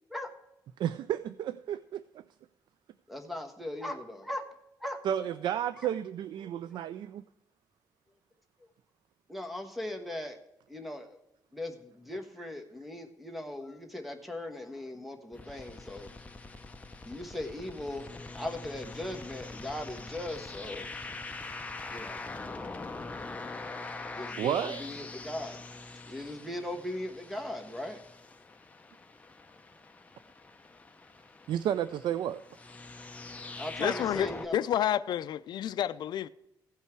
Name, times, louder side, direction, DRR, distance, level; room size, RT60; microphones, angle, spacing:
voice 1, 0.8-2.2 5.0-7.2 24.4-24.8 31.5-32.4, right 10 dB, 75° right, 0.4 m, -32 dB
voice 2, 3.1-4.4 4.8-5.0 5.8-5.9 6.4-6.5 9.3-10.4 10.7-11.2 11.5-16.1 17.0-20.9 21.9-22.2 24.1-25.6 26.1-28.0 33.6-34.5, left 1 dB, ahead, 1.3 m, -39 dB
sound 1, 15.3-34.5, left 3 dB, 15° left, 0.8 m, -43 dB
voice 3, 33.8-36.3, left 10 dB, 70° left, 0.4 m, -30 dB
16.0 x 5.6 x 4.6 m
cardioid pair, 130°, 8 cm